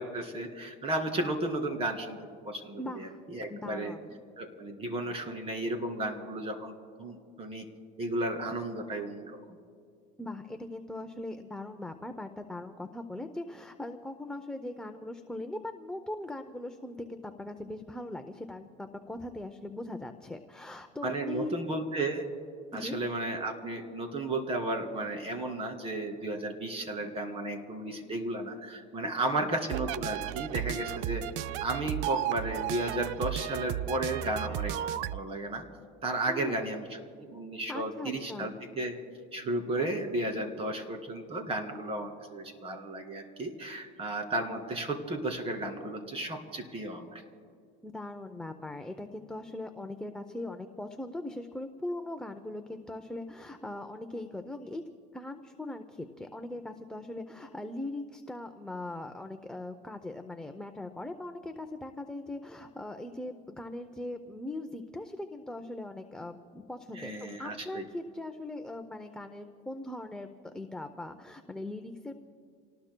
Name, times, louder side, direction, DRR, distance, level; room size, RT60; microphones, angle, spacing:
voice 1, 0.0-2.2 2.4-3.9 4.4-6.7 7.0-7.6 8.0-9.4 21.0-22.2 22.7-31.2 31.6-35.6 36.0-36.8 37.2-38.9 39.3-47.2 66.9-67.8, right 2 dB, 30° right, 5 dB, 2.4 m, -34 dB
voice 2, 2.8-3.2 3.5-4.2 10.2-21.5 22.7-23.0 29.0-29.6 36.3-36.7 37.7-38.6 47.8-54.8 55.1-72.2, left 2 dB, 5° left, 6 dB, 0.6 m, -40 dB
sound 1, 29.7-35.2, right 13 dB, 65° right, 0.4 m, -34 dB
29.0 x 19.0 x 2.2 m, 2.2 s
cardioid pair, 140°, 20 cm